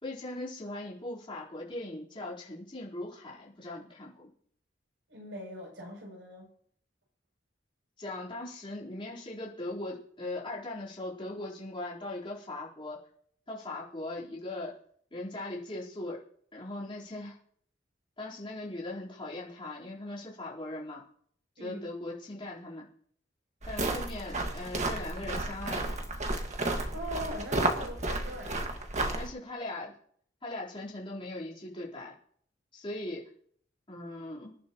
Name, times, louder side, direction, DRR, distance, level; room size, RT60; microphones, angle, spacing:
voice 1, 0.0-4.3 8.0-13.0 13.5-14.7 15.1-16.2 16.5-17.4 18.2-21.0 21.6-22.9 23.7-26.0 29.2-29.9 30.4-32.1 32.7-33.2 33.9-34.5, left 2 dB, 30° left, -6 dB, 4.1 m, -39 dB
voice 2, 5.1-6.5 21.6-21.9 26.9-28.6, equal, 85° right, -1 dB, 7.4 m, -41 dB
sound 1, 23.6-29.3, right 2 dB, 40° right, 1.8 m, -32 dB
26.0 x 11.5 x 3.0 m, 0.63 s
head